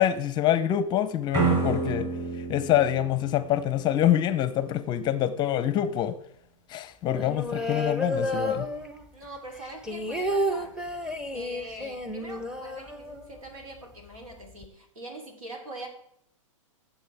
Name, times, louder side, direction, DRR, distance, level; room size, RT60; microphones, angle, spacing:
voice 1, 0.0-2.1 2.4-6.1 6.7-8.7, left 11 dB, 25° left, 0.7 m, -25 dB
sound 1, 1.3-4.2, right 4 dB, 20° right, 2.9 m, -29 dB
sound 2, 7.1-9.2 9.6-13.5 13.8-13.9 14.2-14.7, equal, 5° right, 0.8 m, -31 dB
voice 2, 9.1-10.8 11.3-15.9, right 2 dB, 85° right, 3.5 m, -43 dB
15.5 x 7.3 x 3.5 m
hypercardioid pair, 125°, 17 cm